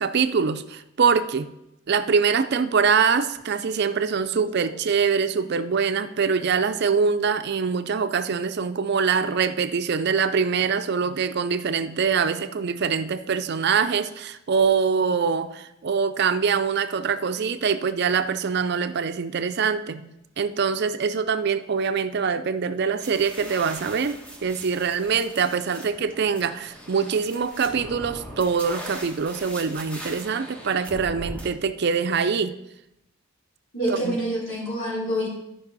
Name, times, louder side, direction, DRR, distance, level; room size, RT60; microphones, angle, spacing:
voice 1, 0.0-1.5 1.9-20.0 20.4-32.6 33.9-34.2, right 6 dB, 55° right, 11 dB, 0.5 m, -24 dB
sound 1, 23.0-31.5, right 1 dB, 5° left, 1.3 m, -40 dB
voice 2, 33.7-35.3, equal, 70° left, -4 dB, 3.7 m, -26 dB
13.5 x 5.2 x 4.1 m, 0.87 s
head